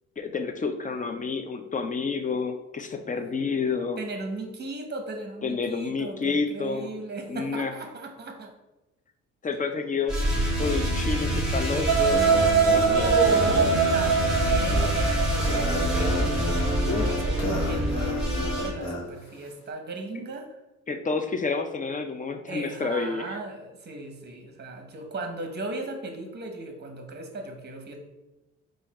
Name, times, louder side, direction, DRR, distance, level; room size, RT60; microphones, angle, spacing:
voice 1, 0.2-4.0 5.4-6.9 7.3-7.7 9.4-10.2 10.6-12.2 12.7-13.8 16.8-17.1 20.9-23.4, left 4 dB, 25° left, 7 dB, 0.5 m, -29 dB
voice 2, 4.0-8.5 13.0-16.5 16.8-20.5 22.5-28.0, right 2 dB, 35° right, 4 dB, 0.9 m, -36 dB
sound 1, 10.1-18.7, equal, ahead, 1.5 m, -27 dB
sound 2, 11.9-16.9, right 6 dB, 65° right, 0.5 m, -23 dB
sound 3, 12.0-19.0, left 1 dB, 65° left, 1.3 m, -32 dB
4.1 x 2.5 x 4.1 m, 1.0 s
cardioid pair, 90°, 30 cm